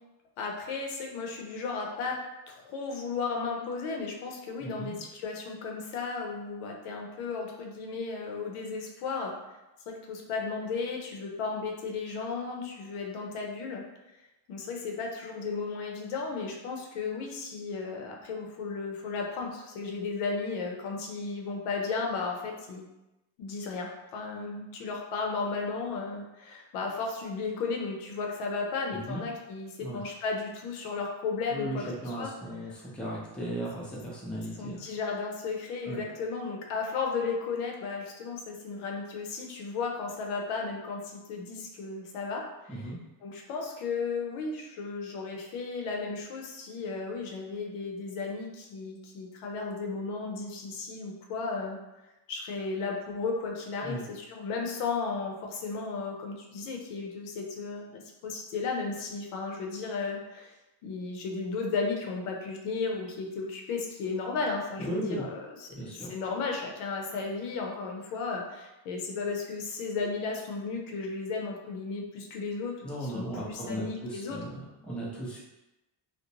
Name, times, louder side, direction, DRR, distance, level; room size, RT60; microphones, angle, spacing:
voice 1, 0.4-2.2 2.5-9.3 9.9-13.8 14.5-22.8 23.4-32.3 34.6-42.9 43.2-51.8 52.0-60.5 60.8-72.7 73.0-74.4, left 4 dB, 90° left, 0 dB, 0.7 m, -34 dB
voice 2, 4.6-4.9 29.1-29.2 29.8-30.0 31.5-34.8 35.9-36.0 42.7-43.0 53.8-54.0 64.8-65.3 65.7-66.1 72.8-75.4, right 1 dB, ahead, -6 dB, 0.5 m, -36 dB
2.5 x 2.0 x 2.8 m, 1.0 s
cardioid pair, 105°, 49 cm